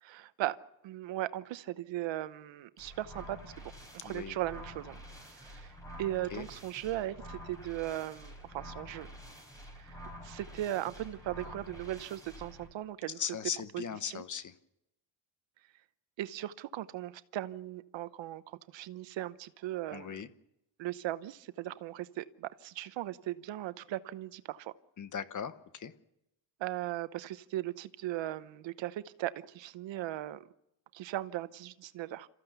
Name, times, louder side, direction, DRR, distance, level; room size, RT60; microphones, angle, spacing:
voice 1, 0.0-0.6 0.8-3.5 3.9-5.0 5.3-5.7 6.0-9.1 9.8-9.9 10.2-13.2 13.7-14.2 16.2-20.2 20.8-24.7 26.6-30.4 30.9-32.3, right 14 dB, 70° right, 15 dB, 0.9 m, -38 dB
sound 1, 2.8-12.7, equal, 5° left, 5.6 m, -48 dB
voice 2, 4.0-4.4 6.3-6.5 13.2-14.5 19.9-20.3 25.0-25.9, left 7 dB, 40° left, 12 dB, 1.2 m, -38 dB
27.0 x 14.5 x 6.9 m, 0.86 s
cardioid pair, 110°, 47 cm